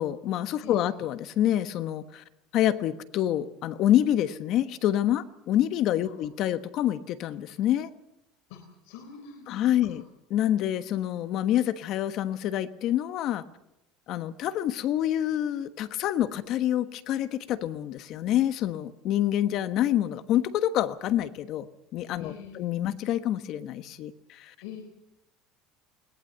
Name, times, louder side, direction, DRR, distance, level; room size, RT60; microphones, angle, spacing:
voice 1, 0.0-2.2 2.5-7.9 9.5-10.0 10.3-13.4 14.1-21.7 21.9-24.5, left 12 dB, 50° left, 13 dB, 1.3 m, -27 dB
voice 2, 8.5-9.6 9.9-10.0 22.2-22.6 24.6-24.8, left 8 dB, 85° left, 3 dB, 3.9 m, -44 dB
21.0 x 18.5 x 8.1 m, 0.88 s
cardioid pair, 145°, 0 cm